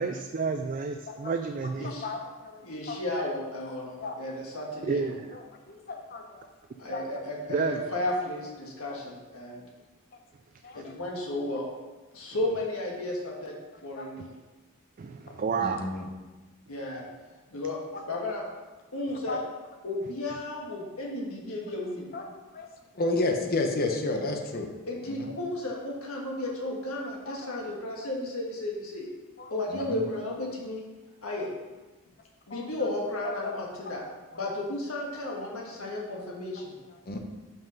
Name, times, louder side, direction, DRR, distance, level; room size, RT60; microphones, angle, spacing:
voice 1, 0.0-1.9 4.8-5.4 7.5-8.0 15.0-15.9 20.3-20.4, right 4 dB, 40° right, 6 dB, 0.3 m, -30 dB
voice 2, 1.8-2.6 2.9-3.2 4.0-4.2 5.3-5.4 5.7-6.5 6.9-7.0 8.9-9.0 10.6-10.8 13.9-14.1 15.6-16.1 17.9-18.0 19.3-19.4 22.1-22.7 22.9-24.7 25.0-25.3 27.3-27.5 29.4-30.0 32.5-32.7 33.2-33.6 37.1-37.2, left 2 dB, 45° left, 3 dB, 0.9 m, -32 dB
voice 3, 2.6-5.0 6.8-9.6 10.7-11.7 12.1-13.5 13.8-14.3 16.7-17.1 17.5-17.8 18.1-18.5 18.9-19.4 19.8-22.1 24.9-29.1 29.5-30.8 31.2-31.5 32.5-34.0 34.3-36.8, left 1 dB, 70° left, -2 dB, 1.7 m, -33 dB
5.7 x 5.6 x 5.3 m, 1.2 s
head